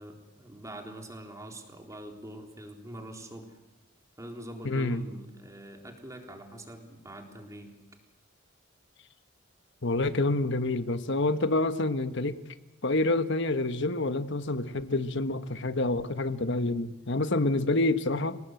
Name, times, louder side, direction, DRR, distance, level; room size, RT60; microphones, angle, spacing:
voice 1, 0.0-3.6 4.2-7.8, right 1 dB, 15° right, 3.7 m, -44 dB
voice 2, 4.6-5.0 9.8-12.4 12.8-18.4, left 2 dB, 60° left, 1.3 m, -27 dB
28.5 x 18.5 x 8.0 m
head